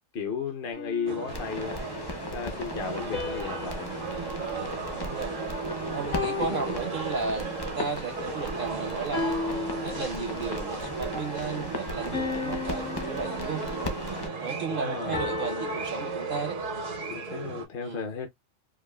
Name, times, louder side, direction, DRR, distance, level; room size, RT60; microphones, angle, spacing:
voice 1, 0.1-1.8 2.3-3.9 6.2-6.7 14.6-15.3 17.1-18.3, left 6 dB, 55° left, 0.8 m, -34 dB
sound 1, 0.7-1.9 3.1-5.6 6.1-7.6 9.1-10.6 12.1-14.0 15.1-16.8, left 4 dB, 85° left, 2.3 m, -36 dB
sound 2, 1.1-17.7, right 5 dB, 85° right, 1.4 m, -36 dB
sound 3, 1.3-14.3, left 2 dB, 25° left, 0.5 m, -37 dB
voice 2, 4.5-5.4 5.9-9.4 9.8-14.0 14.4-16.6 17.8-18.1, right 5 dB, 55° right, 0.6 m, -34 dB
4.7 x 2.4 x 2.2 m
omnidirectional pair, 1.3 m